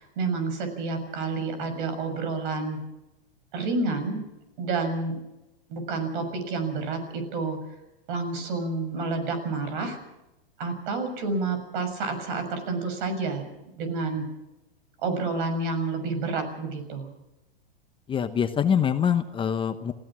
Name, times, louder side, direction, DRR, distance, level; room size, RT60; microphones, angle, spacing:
voice 1, 0.0-2.8 3.5-4.2 4.6-5.2 5.7-7.7 8.1-10.0 10.6-13.4 13.8-14.2 15.0-17.1, right 3 dB, 60° right, 8 dB, 6.8 m, -29 dB
voice 2, 18.1-19.9, left 8 dB, 15° left, 9 dB, 0.9 m, -24 dB
27.5 x 17.0 x 6.2 m, 0.95 s
hypercardioid pair, 125°, 29 cm